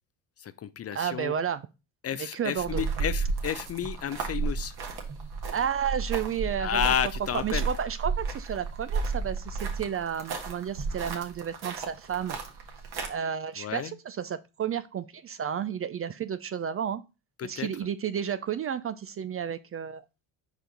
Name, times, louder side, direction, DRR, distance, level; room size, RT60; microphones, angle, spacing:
voice 1, 0.4-1.4 2.0-4.7 6.6-7.7 13.6-13.9 17.4-17.7, left 9 dB, 35° left, 0.5 m, -31 dB
voice 2, 0.9-1.6 2.3-2.8 5.5-6.8 7.4-12.4 13.1-17.0 17.4-20.0, right 8 dB, 30° right, 0.4 m, -32 dB
sound 1, 2.6-13.1, right 4 dB, 55° right, 1.5 m, -33 dB
5.1 x 4.9 x 3.7 m
hypercardioid pair, 60°, 47 cm